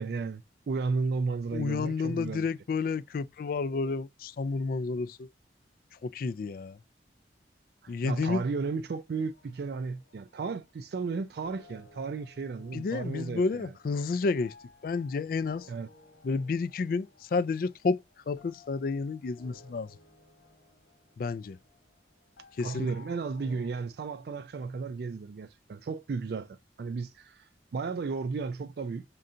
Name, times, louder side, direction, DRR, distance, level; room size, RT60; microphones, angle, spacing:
voice 1, 0.0-2.5 7.8-13.7 15.7-15.9 22.6-29.0, right 4 dB, 55° right, 0.3 m, -34 dB
voice 2, 1.5-5.3 6.0-6.8 7.9-8.4 12.7-14.5 14.8-15.7 16.2-18.0 18.3-19.9 21.2-21.6 22.6-22.9, left 4 dB, 50° left, 0.3 m, -30 dB
sound 1, 9.1-23.8, left 3 dB, 80° left, 1.9 m, -57 dB
5.5 x 3.8 x 2.5 m
head